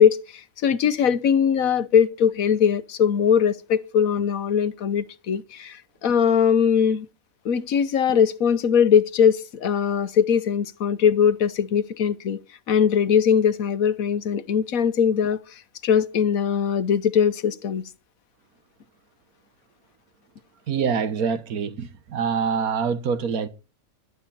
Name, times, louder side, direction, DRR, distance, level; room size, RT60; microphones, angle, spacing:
voice 1, 0.0-7.1 7.4-12.4 12.7-17.9, left 7 dB, 75° left, 1.4 m, -21 dB
voice 2, 20.7-23.5, right 6 dB, 85° right, 1.7 m, -25 dB
13.5 x 11.0 x 4.2 m
omnidirectional pair, 1.5 m